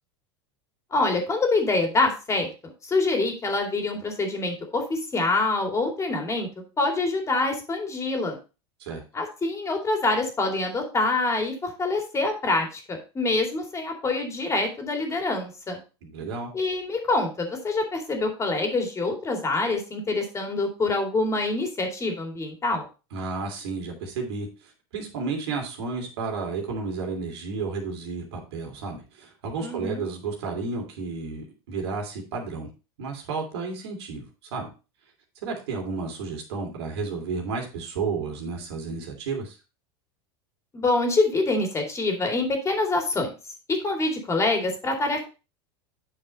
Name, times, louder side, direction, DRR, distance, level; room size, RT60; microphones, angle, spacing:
voice 1, 0.9-2.5 2.9-6.5 6.8-8.4 9.1-15.8 16.5-22.8 29.6-30.0 40.7-43.3 43.7-45.3, left 2 dB, 20° left, 3 dB, 2.4 m, -25 dB
voice 2, 16.0-16.5 23.1-24.5 24.9-32.7 33.0-34.7 35.4-39.6, right 4 dB, 80° right, 2 dB, 2.9 m, -32 dB
8.6 x 5.3 x 4.1 m, 0.32 s
supercardioid pair, 110°, 14 cm